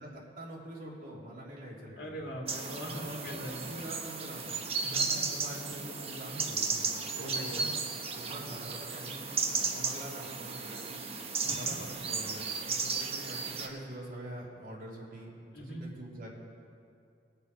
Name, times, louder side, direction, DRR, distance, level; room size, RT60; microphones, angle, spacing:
voice 1, 0.0-2.2 3.0-4.7 5.3-7.7 8.1-16.3, right 1 dB, 50° right, -4 dB, 2.9 m, -45 dB
voice 2, 2.0-3.6 4.8-5.3 7.1-7.7 11.4-11.8 15.5-15.9, equal, 60° left, -1 dB, 2.2 m, -41 dB
sound 1, 2.5-13.7, right 4 dB, 35° right, 1.0 m, -35 dB
20.0 x 6.7 x 5.4 m, 2.4 s
head